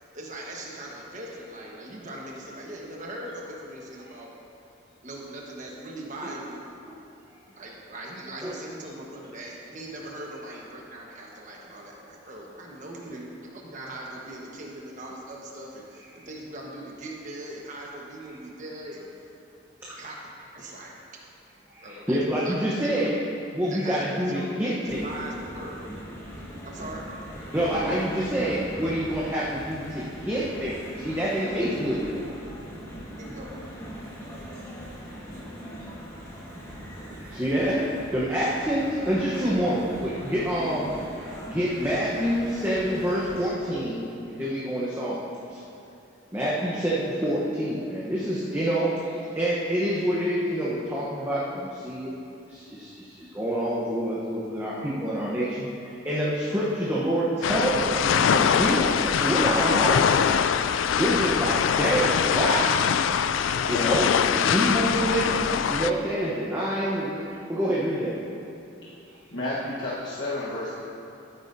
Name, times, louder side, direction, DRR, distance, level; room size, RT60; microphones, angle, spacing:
voice 1, 0.1-4.3 5.0-6.6 7.5-13.3 13.5-19.1 20.0-21.2 21.8-23.2 23.7-25.9 26.6-27.0 33.2-33.6, right 1 dB, 40° right, -2 dB, 1.3 m, -40 dB
voice 2, 21.7-23.2 23.5-25.1 27.5-32.3 37.3-40.9 41.2-45.6 46.3-52.1 52.4-60.1 61.0-62.9 63.7-68.2, equal, 10° right, -7 dB, 1.0 m, -27 dB
sound 1, 24.9-43.5, equal, 15° left, 1.6 m, -40 dB
sound 2, 57.4-65.9, left 7 dB, 85° left, 0.3 m, -23 dB
voice 3, 69.3-70.8, left 2 dB, 65° left, -9 dB, 1.3 m, -31 dB
12.5 x 9.5 x 2.7 m, 2.6 s
head